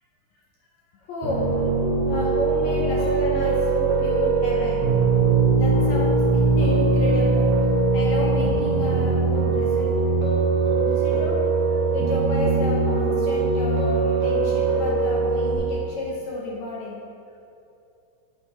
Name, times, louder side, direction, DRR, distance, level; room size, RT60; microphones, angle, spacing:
voice 1, 1.1-1.5 2.0-4.8 5.6-7.5 7.9-9.9 10.8-11.4 11.7-17.0, left 1 dB, 75° left, -4 dB, 1.6 m, -31 dB
Piano, 1.2-15.6, right 3 dB, 55° right, 2.6 m, -21 dB
8.1 x 5.4 x 4.4 m, 2.7 s
omnidirectional pair, 4.2 m